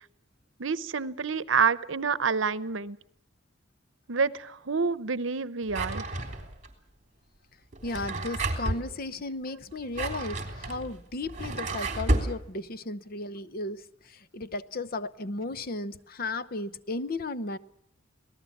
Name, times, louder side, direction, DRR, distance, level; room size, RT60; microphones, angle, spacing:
voice 1, 0.6-3.0 4.1-6.0, right 5 dB, 80° right, 0.9 m, -28 dB
Drawer open or close, 5.7-6.7 7.7-8.9 9.7-12.3, right 2 dB, 40° right, 3.6 m, -31 dB
voice 2, 7.8-17.6, left 2 dB, 50° left, 0.8 m, -35 dB
26.0 x 18.5 x 7.3 m
head